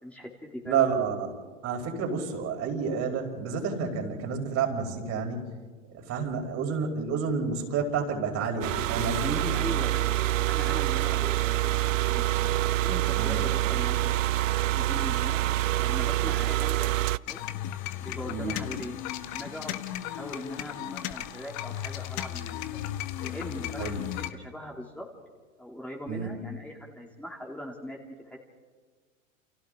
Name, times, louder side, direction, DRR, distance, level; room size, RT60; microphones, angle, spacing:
voice 1, 0.0-0.8 9.0-12.3 12.7-14.2 14.6-15.4 15.8-16.9 17.3-17.4 18.0-19.8 20.0-22.8 23.2-25.1 25.6-28.4, equal, 5° left, -2 dB, 3.1 m, -40 dB
voice 2, 0.6-1.3 1.6-5.5 5.9-9.4 13.2-13.4 18.3-18.5 23.8-24.0 26.1-26.3, right 5 dB, 40° right, 2 dB, 4.8 m, -29 dB
sound 1, 8.6-17.2, right 15 dB, 75° right, 0.6 m, -26 dB
sound 2, 17.3-24.3, left 13 dB, 45° left, 1.4 m, -35 dB
29.5 x 29.0 x 3.9 m, 1.5 s
hypercardioid pair, 95°, 39 cm